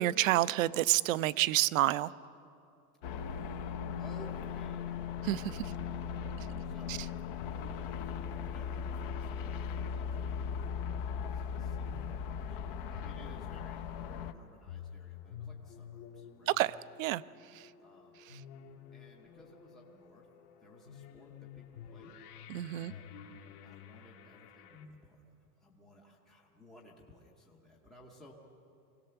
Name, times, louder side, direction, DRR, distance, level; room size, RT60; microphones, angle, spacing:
voice 1, 0.0-2.1 5.2-5.7 6.4-6.5 6.9-7.0 16.5-17.7 18.3-18.4 22.5-22.9, right 15 dB, 55° right, 18 dB, 0.5 m, -30 dB
sound 1, 3.0-14.3, left 7 dB, 35° left, 0.6 m, -38 dB
voice 2, 4.0-4.9 6.6-7.1 8.4-10.7 11.2-16.5 17.8-18.2 18.9-20.3 20.6-21.6 21.9-22.1 22.7-23.1 23.6-28.3, left 1 dB, ahead, -2 dB, 0.7 m, -57 dB
sound 2, 6.5-24.9, left 7 dB, 65° left, 2.0 m, -52 dB
24.0 x 17.5 x 6.8 m, 2.6 s
supercardioid pair, 165°, 49 cm